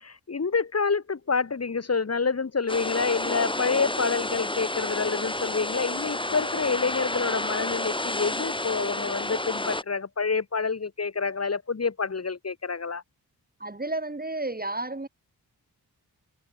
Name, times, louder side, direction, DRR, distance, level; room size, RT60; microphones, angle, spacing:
voice 1, 0.0-13.0, left 5 dB, 40° left, 1.8 m, -28 dB
sound 1, 2.7-9.8, left 2 dB, 15° left, 1.6 m, -30 dB
voice 2, 13.6-15.1, right 2 dB, 25° right, 2.5 m, -31 dB
cardioid pair, 60°, 38 cm